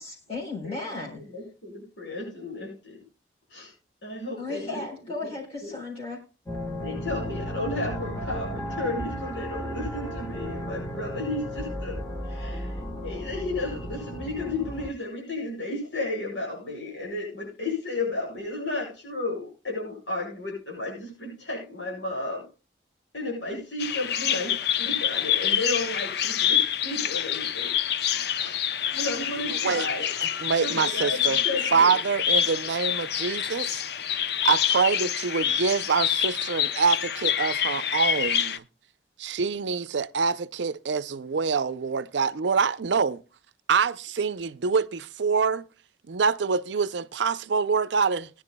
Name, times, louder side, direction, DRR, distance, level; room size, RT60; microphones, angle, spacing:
voice 1, 0.0-1.2 4.4-6.2, left 3 dB, 35° left, 3.8 m, -35 dB
voice 2, 1.1-3.0 3.5-3.7 4.0-4.8 5.2-5.3 5.6-5.7 6.8-22.5 23.1-27.7 28.4-30.1 30.6-32.0 35.4-35.6, left 2 dB, 85° left, 8.0 m, -33 dB
sound 1, 6.5-14.9, equal, 15° left, 1.4 m, -34 dB
Bird vocalization bird call bird song, 23.8-38.6, left 9 dB, 60° left, 0.6 m, -27 dB
voice 3, 29.5-29.9 30.4-31.4 31.7-33.8 34.4-38.6 39.2-43.2 43.7-45.6 46.1-48.3, right 5 dB, 80° right, 0.5 m, -25 dB
21.0 x 10.5 x 2.2 m
head